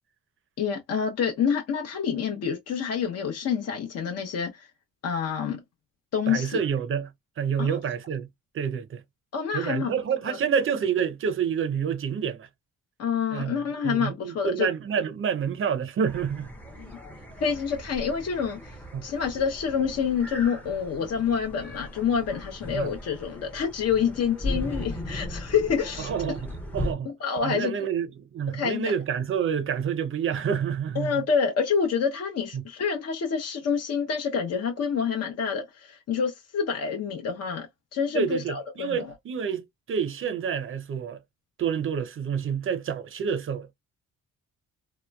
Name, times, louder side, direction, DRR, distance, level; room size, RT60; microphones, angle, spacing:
voice 1, 0.6-4.5 5.0-5.6 6.1-6.6 7.6-7.8 9.3-9.9 10.3-10.4 13.0-14.7 17.4-18.8 19.0-26.1 27.2-27.7 28.5-28.9 31.0-37.7 37.9-39.1, left 6 dB, 55° left, 0.7 m, -27 dB
voice 2, 6.3-7.1 7.4-8.3 8.5-9.0 9.5-12.5 13.3-16.5 18.9-19.1 22.7-22.9 26.0-27.1 27.4-31.2 32.5-32.6 38.1-41.2 41.6-43.7, right 7 dB, 45° right, 0.6 m, -28 dB
sound 1, 16.1-26.9, left 1 dB, 5° left, 0.6 m, -37 dB
2.9 x 2.1 x 2.2 m
cardioid pair, 90°, 30 cm